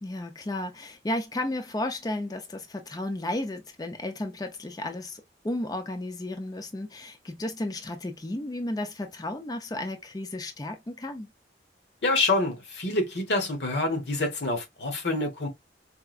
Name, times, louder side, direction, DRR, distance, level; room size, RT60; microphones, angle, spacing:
voice 1, 0.0-11.3, left 1 dB, 20° left, 0.4 m, -33 dB
voice 2, 12.0-15.5, left 2 dB, 65° left, 1.1 m, -27 dB
4.7 x 2.2 x 2.3 m
head